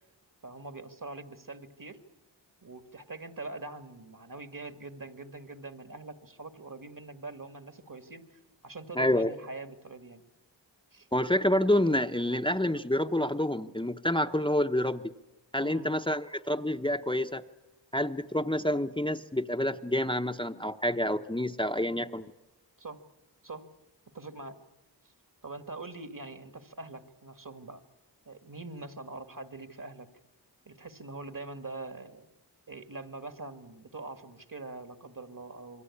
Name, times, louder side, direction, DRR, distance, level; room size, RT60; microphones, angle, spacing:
voice 1, 0.4-2.0 2.6-10.2 10.9-11.1 15.6-16.0 22.8-23.0 23.4-23.7 24.1-24.6 25.0-25.1 25.4-27.8 28.3-30.1 30.7-32.3 32.7-35.8, right 3 dB, 50° right, 8 dB, 2.1 m, -43 dB
voice 2, 9.0-9.3 11.1-15.0 15.5-17.4 17.9-22.3, left 1 dB, 10° left, 6 dB, 0.9 m, -28 dB
27.0 x 23.0 x 8.6 m, 1.0 s
cardioid pair, 45°, 42 cm